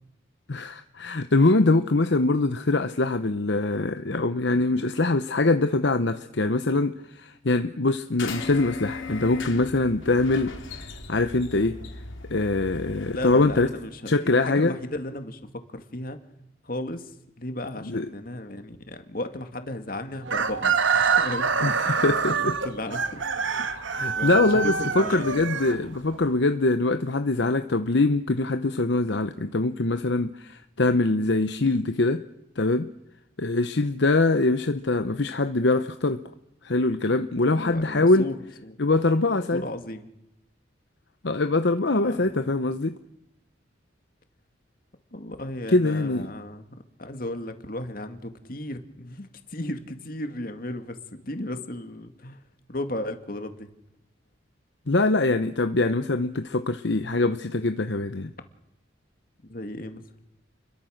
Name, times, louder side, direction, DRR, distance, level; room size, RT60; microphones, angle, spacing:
voice 1, 0.5-10.5 10.8-11.8 12.3-13.7 14.1-14.7 17.8-18.1 21.6-22.6 23.5-32.2 32.6-32.9 33.4-36.2 36.6-38.3 38.8-39.6 41.2-43.0 45.7-46.3 54.9-58.3, left 2 dB, 65° left, 9 dB, 0.9 m, -23 dB
sound 1, 8.2-13.5, left 3 dB, 80° left, 3.7 m, -37 dB
voice 2, 13.0-15.4 15.7-16.2 16.6-22.0 22.4-23.3 23.6-23.9 24.2-25.4 37.5-38.4 38.6-38.8 39.5-40.1 42.1-42.5 45.1-46.7 47.0-52.4 52.7-53.7 59.4-60.0, left 1 dB, 45° left, 7 dB, 2.4 m, -35 dB
Chicken rooster, 20.3-26.2, right 6 dB, 75° right, 1.4 m, -26 dB
29.5 x 22.5 x 6.6 m, 0.84 s
head